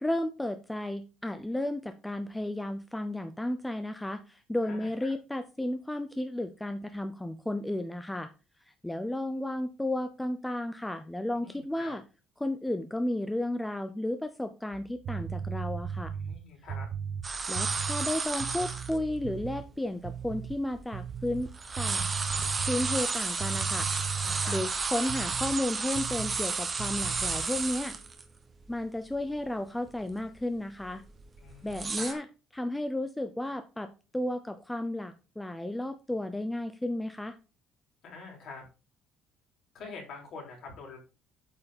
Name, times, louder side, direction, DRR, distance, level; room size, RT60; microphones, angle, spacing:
voice 1, 0.0-8.3 8.8-12.0 12.4-16.1 17.5-21.5 21.8-22.1 22.7-24.1 24.5-28.0 28.7-31.0 31.6-32.2 32.5-37.4, left 1 dB, 5° left, 9 dB, 0.5 m, -33 dB
voice 2, 4.6-5.1 11.4-11.9 16.2-16.9 24.2-24.6 31.4-32.2 38.0-38.6 39.7-41.0, left 4 dB, 50° left, 0 dB, 3.9 m, -45 dB
sound 1, 14.7-19.7 20.0-20.6 20.9-25.6 25.9-26.5 26.8-27.5, right 7 dB, 45° right, 0.5 m, -37 dB
sound 2, 17.2-19.0 19.6-19.7 20.3-21.3 21.5-28.2 28.6-28.7 29.1-29.5 29.9-30.1 30.8-32.1, right 4 dB, 20° right, 1.0 m, -32 dB
8.5 x 5.5 x 4.1 m, 0.31 s
cardioid pair, 160°, 0 cm